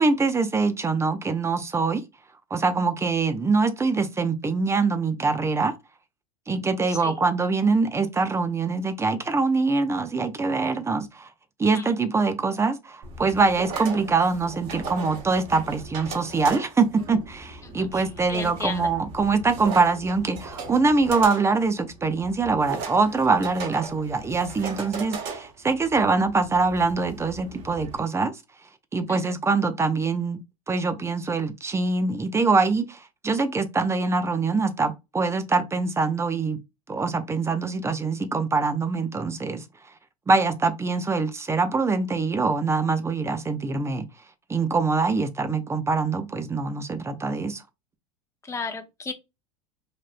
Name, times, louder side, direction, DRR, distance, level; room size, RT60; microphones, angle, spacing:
voice 1, 0.0-2.0 2.5-5.7 6.5-11.3 11.6-28.3 28.9-30.4 30.7-36.6 36.9-39.6 40.3-44.1 44.5-47.6, right 4 dB, 15° right, 0.6 m, -24 dB
voice 2, 6.9-7.2 11.7-11.9 17.9-18.9 29.1-29.2 48.4-49.1, left 4 dB, 15° left, 0.8 m, -34 dB
sound 1, 13.0-28.0, right 4 dB, 55° right, 1.3 m, -38 dB
3.4 x 2.6 x 2.5 m
hypercardioid pair, 100°, 18 cm